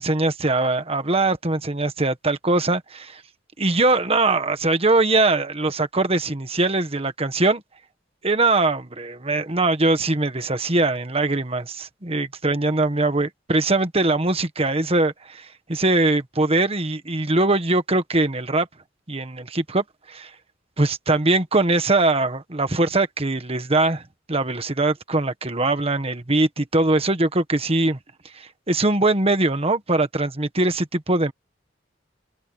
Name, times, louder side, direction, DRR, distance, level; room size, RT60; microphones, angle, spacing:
voice 1, 0.0-3.2 3.6-7.6 8.2-18.7 19.1-20.3 20.8-24.0 24.3-28.0 28.3-31.3, right 2 dB, 30° right, 1.5 m, -22 dB
open air
head